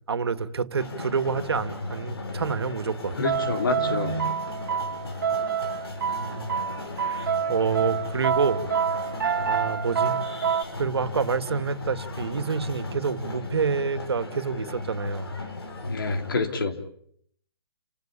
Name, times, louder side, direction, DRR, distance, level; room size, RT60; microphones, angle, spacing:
voice 1, 0.1-3.2 6.2-6.4 7.0-8.7 9.4-10.2 10.8-15.3, right 5 dB, 85° right, 10 dB, 2.3 m, -28 dB
sound 1, 0.8-16.3, left 3 dB, 75° left, 7.6 m, -36 dB
voice 2, 3.2-4.4 15.9-16.9, left 3 dB, 60° left, 6 dB, 3.5 m, -27 dB
sound 2, 3.2-10.6, right 7 dB, 50° right, 2.1 m, -27 dB
29.5 x 16.5 x 8.5 m, 0.67 s
hypercardioid pair, 175°, 13 cm